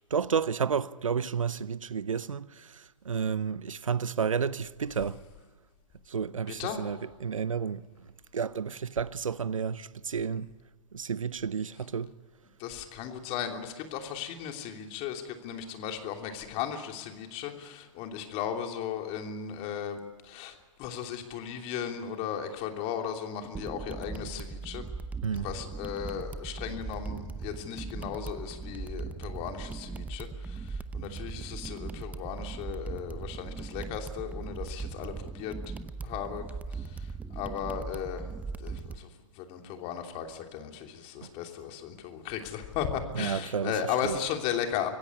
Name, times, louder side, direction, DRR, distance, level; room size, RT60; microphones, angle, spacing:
voice 1, 0.1-5.2 6.1-7.9 8.3-10.5 10.9-12.1 25.2-25.5 41.2-41.3 43.1-43.7 44.0-44.2, right 6 dB, 85° right, 0.8 m, -31 dB
voice 2, 12.6-24.8 25.3-35.6 36.0-39.1 39.3-44.9, left 8 dB, 40° left, 3.1 m, -36 dB
sound 1, 23.5-39.0, right 4 dB, 10° right, 0.8 m, -39 dB
25.5 x 15.5 x 9.7 m
hypercardioid pair, 115°, 17 cm